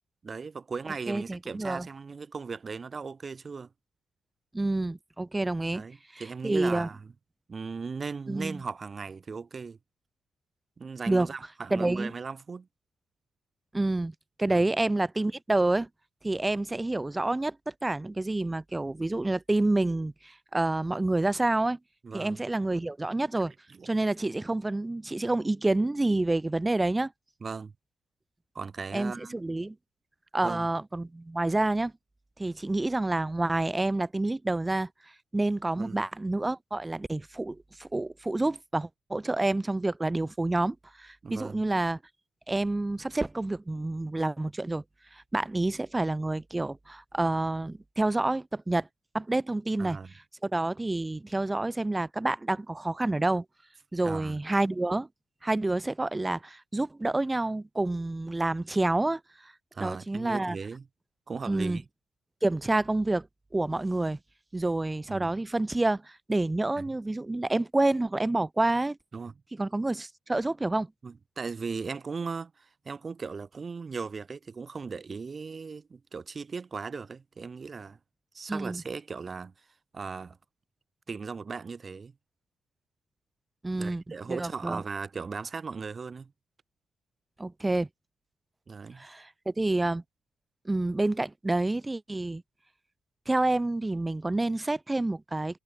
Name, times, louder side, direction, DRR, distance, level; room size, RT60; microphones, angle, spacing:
voice 1, 0.2-3.7 5.7-7.1 7.5-9.8 10.8-12.7 14.4-14.7 22.0-22.4 23.7-23.9 27.4-27.7 28.5-29.4 30.4-30.7 35.8-36.0 41.2-41.6 49.8-50.1 54.0-54.4 59.7-60.9 61.3-61.8 65.1-65.3 66.8-66.9 69.1-69.3 71.0-78.0 78.3-79.5 79.9-80.4 81.1-82.1 83.8-86.3 88.7-89.1, right 5 dB, 30° right, 3.0 m, -37 dB
voice 2, 1.1-1.9 4.5-5.8 6.1-6.9 8.3-8.6 11.1-11.3 11.7-12.1 13.7-15.9 16.2-21.8 22.1-23.5 23.9-27.1 28.9-29.8 30.3-31.9 32.4-34.9 35.3-42.0 42.5-44.8 45.1-48.9 49.1-50.0 50.4-53.4 53.9-55.1 55.4-59.5 59.8-60.6 61.5-61.8 62.4-63.3 63.5-64.2 64.5-69.0 69.6-70.9 78.5-78.8 83.6-84.0 84.3-84.8 87.4-87.9 89.0-90.0 90.7-92.4 93.3-95.6, right 2 dB, 10° right, 0.6 m, -28 dB
cardioid pair, 150°, 0 cm